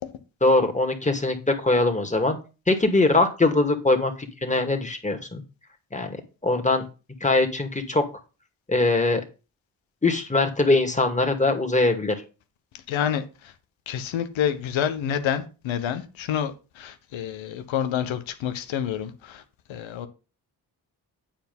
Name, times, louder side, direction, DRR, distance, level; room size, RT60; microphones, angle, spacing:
voice 1, 0.4-2.4 2.7-5.4 5.9-6.2 6.4-6.8 7.2-8.0 8.7-9.2 10.0-12.2, left 2 dB, 15° left, 2.2 m, -22 dB
voice 2, 12.9-13.2 13.9-16.5 16.8-19.4 19.7-20.1, left 9 dB, 85° left, 1.1 m, -28 dB
8.8 x 4.9 x 5.4 m
supercardioid pair, 45°, 46 cm